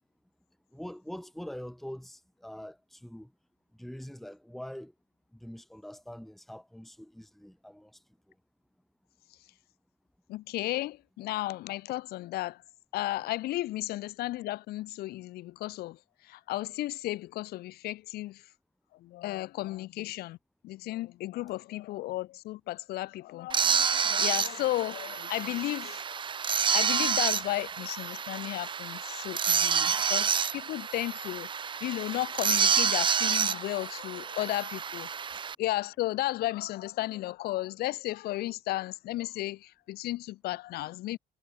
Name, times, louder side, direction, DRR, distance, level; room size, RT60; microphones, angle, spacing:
voice 1, 0.7-3.3 3.8-4.9 5.4-8.0, equal, ahead, 1.4 m, -43 dB
voice 2, 10.3-12.6 12.9-16.0 16.3-18.4 19.0-20.4 20.6-26.3 26.7-31.5 31.8-35.1 35.6-41.2, left 17 dB, 70° left, 0.5 m, -34 dB
sound 1, 23.5-35.5, right 6 dB, 30° right, 0.6 m, -29 dB
cardioid pair, 110°, 17 cm